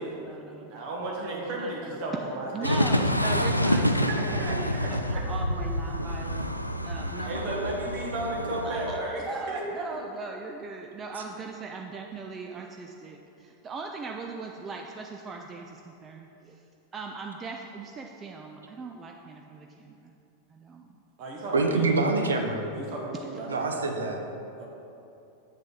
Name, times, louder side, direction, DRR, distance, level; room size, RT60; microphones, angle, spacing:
voice 1, 0.0-1.9 2.3-6.5 6.8-7.5 8.6-9.0 9.3-16.6 16.9-20.1 20.5-20.9 21.7-21.9, right 4 dB, 20° right, 2 dB, 0.4 m, -39 dB
voice 2, 0.7-3.1 3.8-5.2 7.2-9.6 21.2-21.9 22.7-23.8 24.6-24.7, right 2 dB, 45° right, -2 dB, 1.3 m, -34 dB
beach and longer train, 2.6-9.0, left 1 dB, 90° left, 0.3 m, -27 dB
voice 3, 21.5-22.7 23.5-24.2, right 3 dB, 70° right, 4 dB, 0.8 m, -25 dB
7.5 x 7.4 x 3.7 m, 2.8 s
figure-of-eight pair, 90°, 0 cm